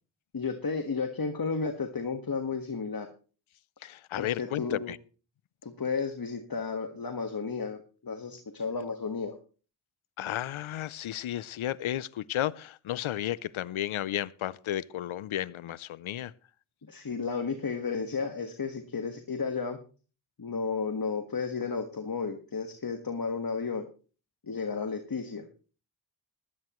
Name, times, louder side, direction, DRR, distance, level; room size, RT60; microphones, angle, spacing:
voice 1, 0.3-3.1 4.2-4.9 5.6-9.4 16.9-19.8 20.4-23.8 24.4-25.5, left 5 dB, 45° left, 1.6 m, -33 dB
voice 2, 3.8-5.0 10.2-16.3, left 12 dB, 80° left, 0.6 m, -33 dB
16.0 x 12.5 x 3.1 m
cardioid pair, 45°, 48 cm